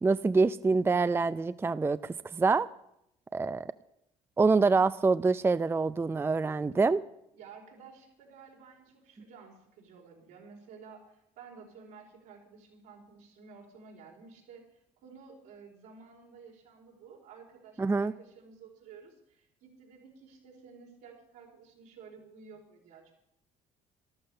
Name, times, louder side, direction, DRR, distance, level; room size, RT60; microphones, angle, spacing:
voice 1, 0.0-2.7 3.3-3.7 4.4-7.0 17.8-18.1, right 4 dB, 15° right, 14 dB, 0.4 m, -26 dB
voice 2, 7.3-23.1, right 5 dB, 80° right, -1 dB, 4.4 m, -53 dB
12.5 x 11.5 x 6.7 m, 0.80 s
supercardioid pair, 70°, 15 cm